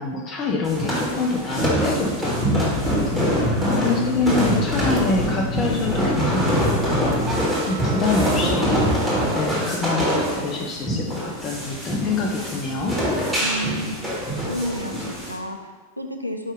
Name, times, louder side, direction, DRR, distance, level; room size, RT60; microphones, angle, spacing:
voice 1, 0.0-8.7 9.3-12.9, left 3 dB, 30° left, 0 dB, 0.4 m, -26 dB
sound 1, 0.6-15.3, equal, 5° right, 1.4 m, -24 dB
sound 2, 2.2-7.4, left 3 dB, 50° left, 0.9 m, -30 dB
voice 2, 3.5-4.2 13.4-14.2 14.5-16.5, equal, 90° right, 5 dB, 0.3 m, -31 dB
sound 3, 7.3-13.1, right 2 dB, 25° right, 0.7 m, -40 dB
4.8 x 2.6 x 3.6 m, 1.4 s
figure-of-eight pair, 90°, 0 cm